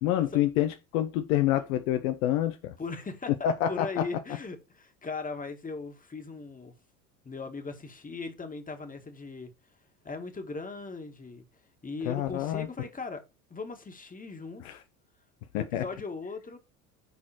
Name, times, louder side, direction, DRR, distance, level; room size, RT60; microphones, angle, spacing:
voice 1, 0.0-2.7 3.4-4.0 12.1-12.7 14.6-14.8 15.5-15.8, left 12 dB, 65° left, 0.9 m, -27 dB
voice 2, 2.8-6.7 7.2-9.5 10.0-11.4 11.8-13.2 13.5-14.8 15.6-16.6, left 4 dB, 20° left, 2.1 m, -39 dB
11.0 x 4.2 x 4.4 m
hypercardioid pair, 70°, 44 cm